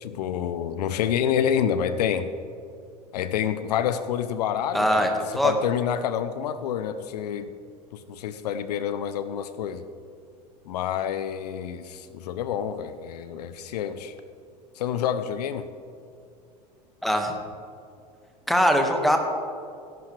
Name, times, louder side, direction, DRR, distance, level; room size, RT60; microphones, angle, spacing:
voice 1, 0.0-2.3 3.1-5.1 5.4-7.5 7.9-9.8 10.7-14.1 14.8-15.7, left 9 dB, 75° left, 12 dB, 0.7 m, -28 dB
voice 2, 4.7-5.1 5.4-5.5 17.0-17.3 18.5-19.2, equal, ahead, 3 dB, 1.7 m, -21 dB
17.5 x 11.0 x 3.4 m, 2.4 s
hypercardioid pair, 90°, 21 cm